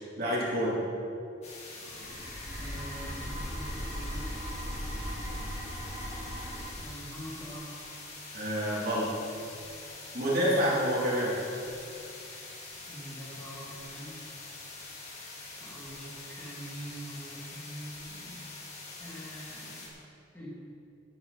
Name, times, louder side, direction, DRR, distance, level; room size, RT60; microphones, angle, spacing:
voice 1, 0.2-0.8 8.3-9.1 10.1-11.3, equal, 50° right, -7 dB, 3.6 m, -28 dB
sound 1, 1.4-19.9, left 3 dB, 35° left, 2.5 m, -45 dB
sound 2, 1.7-6.7, equal, 15° right, 2.5 m, -38 dB
voice 2, 2.6-4.3 6.8-7.7 10.3-10.6 12.9-14.2 15.6-18.4 19.0-19.9 20.3-20.5, equal, 10° left, -7 dB, 2.8 m, -44 dB
18.5 x 8.2 x 4.4 m, 2.6 s
head